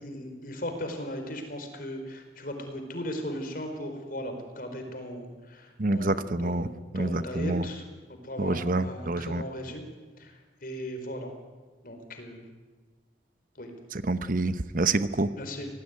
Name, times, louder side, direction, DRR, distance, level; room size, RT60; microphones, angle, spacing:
voice 1, 0.0-6.7 6.9-7.8 8.1-9.8 10.2-11.3 11.8-12.4 13.5-13.7 15.4-15.7, equal, 55° left, 6 dB, 4.6 m, -37 dB
voice 2, 5.8-6.7 6.9-7.7 8.4-9.4 13.9-15.3, right 2 dB, 50° right, 13 dB, 1.0 m, -27 dB
26.0 x 18.5 x 9.5 m, 1.4 s
head